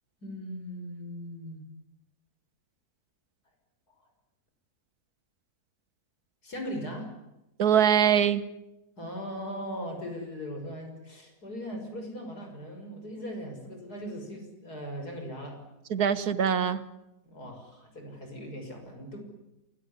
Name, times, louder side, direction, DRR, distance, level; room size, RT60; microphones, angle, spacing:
voice 1, 0.2-1.6 4.0-4.1 6.4-7.1 9.0-15.6 17.2-19.2, equal, 85° left, 3 dB, 6.7 m, -39 dB
voice 2, 7.6-8.4 15.9-16.8, right 8 dB, 75° right, 15 dB, 1.7 m, -23 dB
28.5 x 17.5 x 9.8 m, 0.92 s
omnidirectional pair, 1.6 m